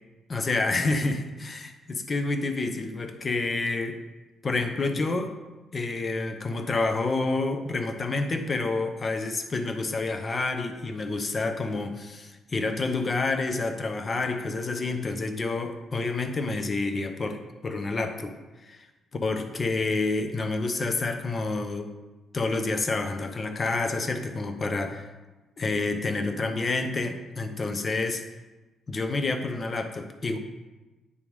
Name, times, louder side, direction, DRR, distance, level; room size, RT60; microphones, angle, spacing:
voice 1, 0.3-4.0 4.4-5.3 5.7-18.4 18.6-18.8 19.1-21.9 22.3-25.1 25.6-28.2 28.9-30.4, left 3 dB, 35° left, 7 dB, 0.8 m, -28 dB
8.5 x 3.5 x 4.7 m, 1.1 s
cardioid pair, 90°, 0 cm